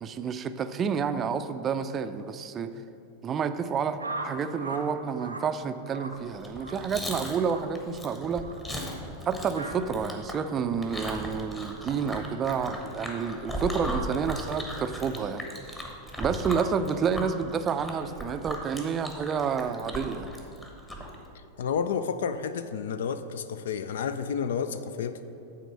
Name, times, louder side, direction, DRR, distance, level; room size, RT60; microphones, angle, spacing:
voice 1, 0.0-2.7 3.2-8.5 9.3-15.9 16.2-20.3, right 6 dB, 25° right, 10 dB, 0.4 m, -29 dB
sound 1, 4.0-4.9 5.1-5.5 5.9-6.2 6.6-6.8 7.4-7.7 8.4-8.6 9.5-9.7, right 2 dB, 85° right, 0.7 m, -37 dB
Chewing mastication, 6.3-21.2, equal, 15° left, 1.2 m, -37 dB
voice 2, 21.6-25.2, left 6 dB, 60° left, 12 dB, 0.3 m, -30 dB
9.1 x 4.2 x 6.3 m, 2.9 s
figure-of-eight pair, 90°, 0 cm